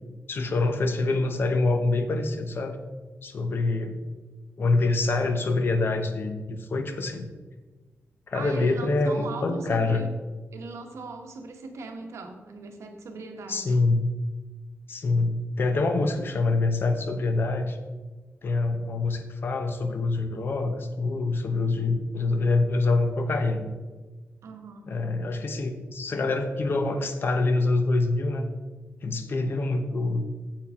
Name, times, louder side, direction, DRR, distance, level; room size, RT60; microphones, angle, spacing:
voice 1, 0.3-2.8 3.2-4.0 4.6-7.3 8.3-10.1 13.5-14.1 14.9-17.8 18.4-23.7 24.9-28.5 29.0-30.3, left 3 dB, 50° left, 7 dB, 0.9 m, -25 dB
voice 2, 8.3-10.1 10.5-13.7 15.7-15.9 24.4-24.9, right 3 dB, 85° right, 4 dB, 1.2 m, -39 dB
8.6 x 7.6 x 3.7 m, 1.3 s
wide cardioid pair, 165°, 5 cm